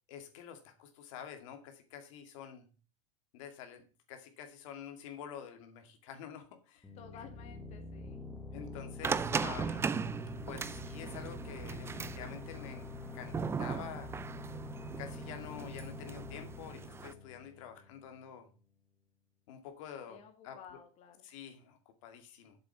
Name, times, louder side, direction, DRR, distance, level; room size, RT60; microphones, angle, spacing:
voice 1, 0.1-2.7 3.3-3.8 4.1-6.9 8.5-9.9 10.5-12.9 13.1-14.1 15.0-18.5 19.5-20.6 21.2-22.6, left 8 dB, 70° left, 6 dB, 2.3 m, -48 dB
sound 1, 6.8-18.2, left 4 dB, 10° left, 1.3 m, -47 dB
voice 2, 7.0-8.2 20.1-21.3, left 7 dB, 40° left, 5 dB, 2.1 m, -53 dB
sound 2, 9.0-17.1, right 6 dB, 15° right, 0.5 m, -38 dB
7.7 x 7.7 x 7.1 m, 0.36 s
supercardioid pair, 130°, 17 cm